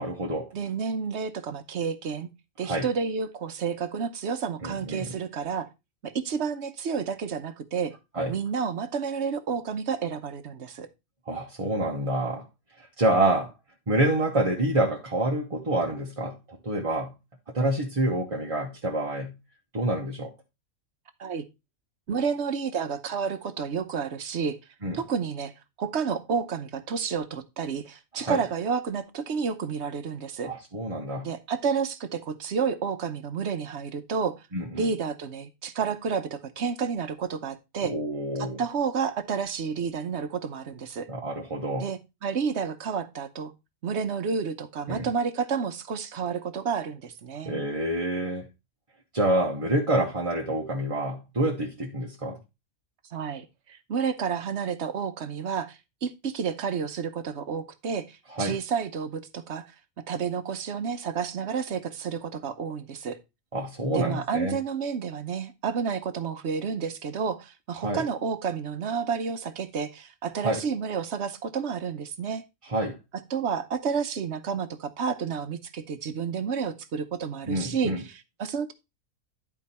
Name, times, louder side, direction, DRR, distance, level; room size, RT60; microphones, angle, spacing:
voice 1, 0.0-0.5 2.6-2.9 4.6-5.1 8.1-8.3 11.3-12.5 12.8-13.5 13.9-17.1 17.5-19.4 19.7-20.3 24.8-25.0 28.1-28.4 30.4-31.3 34.5-34.9 37.8-38.6 41.1-41.9 44.9-45.1 47.4-48.5 49.1-52.4 58.3-58.6 63.5-64.6 67.8-68.0 70.4-70.6 72.6-73.0 77.5-78.0, right 1 dB, 25° right, 1.0 m, -27 dB
voice 2, 0.5-2.3 2.6-5.7 6.0-8.0 8.3-10.9 21.2-21.4 22.1-24.6 24.9-25.5 25.8-30.5 31.2-34.4 34.7-37.9 38.4-41.1 41.8-43.5 43.8-47.7 53.1-59.7 60.1-63.2 63.9-72.4 73.3-78.7, right 6 dB, 60° right, 1.1 m, -30 dB
10.5 x 4.5 x 4.2 m
omnidirectional pair, 1.4 m